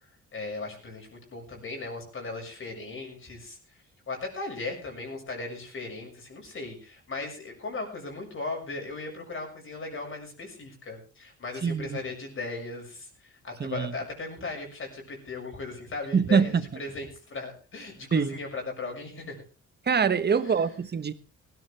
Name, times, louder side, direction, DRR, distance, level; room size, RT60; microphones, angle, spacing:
voice 1, 0.3-3.6 4.1-19.4 20.4-20.8, left 3 dB, 45° left, 6.7 m, -37 dB
voice 2, 11.6-12.0 13.6-13.9 16.1-16.6 18.1-18.4 19.9-21.1, right 6 dB, 35° right, 1.2 m, -24 dB
18.5 x 14.0 x 3.4 m
cardioid pair, 90°, 30 cm